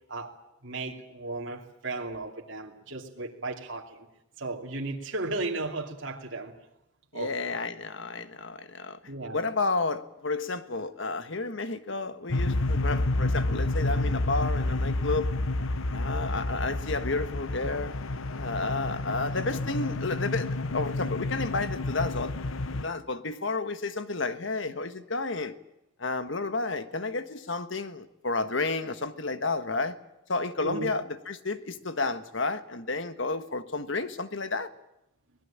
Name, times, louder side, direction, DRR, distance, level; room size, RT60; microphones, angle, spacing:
voice 1, 0.6-4.1 4.4-6.5 7.1-7.5 9.1-9.4 30.6-30.9, right 2 dB, 65° right, 2.8 m, -35 dB
voice 2, 7.1-9.0 9.3-15.3 15.9-17.9 18.3-22.3 22.8-25.5 26.0-30.0 30.3-34.7, left 3 dB, 65° left, 1.4 m, -31 dB
sound 1, 12.3-22.8, left 2 dB, 85° left, 1.0 m, -29 dB
25.0 x 19.5 x 8.8 m
head